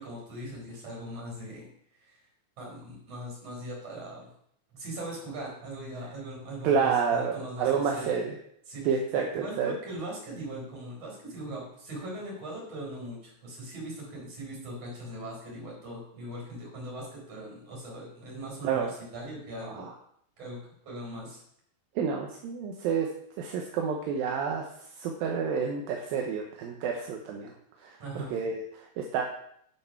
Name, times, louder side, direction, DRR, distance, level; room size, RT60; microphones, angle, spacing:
voice 1, 0.0-1.7 2.0-2.2 2.6-4.3 4.7-8.1 8.7-8.8 9.2-18.9 19.1-19.9 20.4-20.6 20.8-21.4 28.0-28.4, right 1 dB, 40° right, -2 dB, 5.4 m, -40 dB
voice 2, 6.6-8.4 8.9-9.7 18.6-18.9 19.6-19.9 22.0-23.1 23.4-24.6 25.0-27.5 27.8-29.2, right 6 dB, 75° right, 2 dB, 2.7 m, -29 dB
10.5 x 6.8 x 5.9 m, 0.69 s
omnidirectional pair, 4.3 m